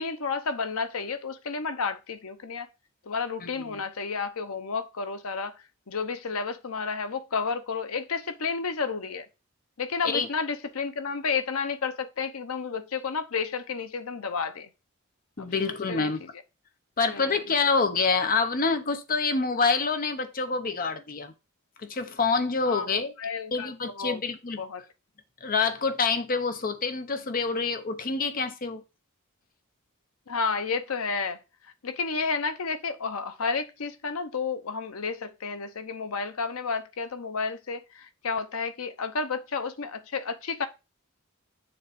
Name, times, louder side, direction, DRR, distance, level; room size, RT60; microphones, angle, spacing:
voice 1, 0.0-2.7 3.1-5.5 5.9-9.3 9.8-14.7 15.4-16.1 17.1-17.4 22.7-23.7 23.9-24.2 24.6-24.8 30.3-31.4 31.8-40.7, left 5 dB, 75° left, 0.8 m, -31 dB
voice 2, 3.4-3.8 10.0-10.3 15.4-16.3 17.0-21.3 21.8-23.1 23.5-24.6 25.4-28.8, left 4 dB, 40° left, 0.8 m, -27 dB
7.0 x 3.1 x 5.1 m
head